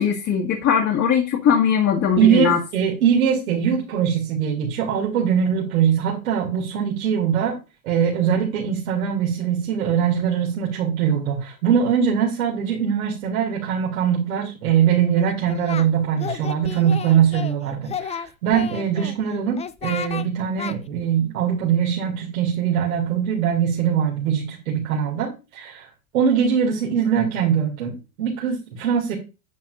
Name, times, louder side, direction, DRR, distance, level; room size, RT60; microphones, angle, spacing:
voice 1, 0.0-2.6, left 7 dB, 40° left, 0 dB, 1.9 m, -20 dB
voice 2, 2.2-7.6 7.8-25.9 26.1-29.1, right 8 dB, 80° right, -3 dB, 2.4 m, -22 dB
Singing, 15.2-15.9 16.2-17.6 17.9-19.1 19.6-20.3 20.6-20.8, left 7 dB, 15° left, 0.4 m, -32 dB
9.3 x 7.3 x 2.5 m, 0.29 s
hypercardioid pair, 100°, 42 cm